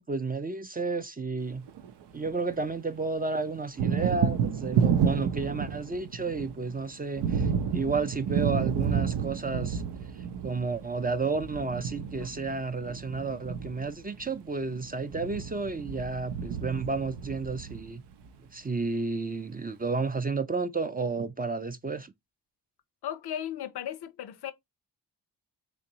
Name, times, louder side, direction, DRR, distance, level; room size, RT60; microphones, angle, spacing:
voice 1, 0.0-1.7 2.1-9.8 10.4-18.0 18.5-22.1, right 4 dB, 20° right, 0.4 m, -32 dB
Thunder, 1.5-2.7 3.0-18.3, right 7 dB, 75° right, 0.5 m, -31 dB
voice 2, 23.0-24.5, left 10 dB, 70° left, 0.6 m, -36 dB
3.5 x 3.0 x 2.7 m
supercardioid pair, 45°, 41 cm